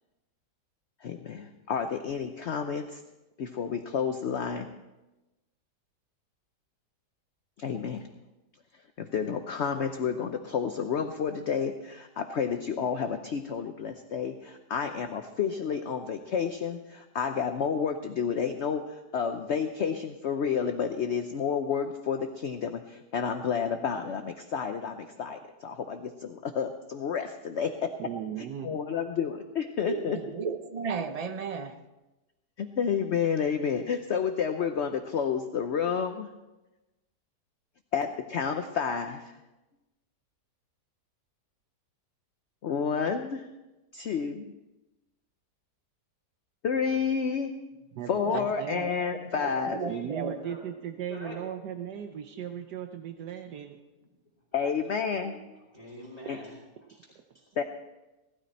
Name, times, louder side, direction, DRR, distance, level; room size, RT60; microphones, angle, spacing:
voice 1, 1.0-3.0 3.4-4.7 7.6-8.1 9.0-27.9 28.4-30.2 32.6-36.3 37.9-39.3 42.6-43.4 43.9-44.5 46.6-47.5 48.1-49.8 54.5-55.3 56.3-56.4 57.6-57.7, left 6 dB, 55° left, 6 dB, 0.8 m, -30 dB
voice 2, 28.0-28.8 48.0-48.8 49.9-53.8 56.2-56.4, right 9 dB, 75° right, 6 dB, 1.4 m, -37 dB
voice 3, 29.9-31.8 48.2-48.9 49.7-50.4, right 5 dB, 50° right, 8 dB, 0.4 m, -34 dB
voice 4, 49.3-50.0 50.4-50.7 51.1-51.5 51.9-52.0 52.3-52.5 53.1-53.2 53.9-54.1 54.5-54.7 55.0-57.1 57.3-57.5, left 1 dB, 20° left, -6 dB, 2.6 m, -47 dB
18.0 x 12.5 x 4.3 m, 1.1 s
omnidirectional pair, 1.8 m